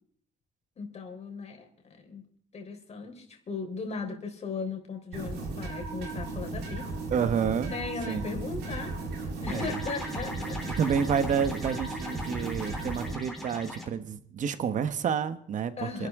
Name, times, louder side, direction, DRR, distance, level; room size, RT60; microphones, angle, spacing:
voice 1, 0.8-2.3 2.5-6.9 7.7-9.0 9.4-10.8 15.8-16.1, left 4 dB, 40° left, 3 dB, 3.8 m, -37 dB
sound 1, 5.1-13.1, right 3 dB, 80° right, 6.3 m, -36 dB
voice 2, 7.1-7.7 8.1-8.2 9.5-9.7 10.8-16.1, right 7 dB, 50° right, 11 dB, 1.2 m, -29 dB
sound 2, 9.5-13.8, left 1 dB, ahead, 3.7 m, -39 dB
26.5 x 12.0 x 3.7 m, 0.64 s
cardioid pair, 110°, 17 cm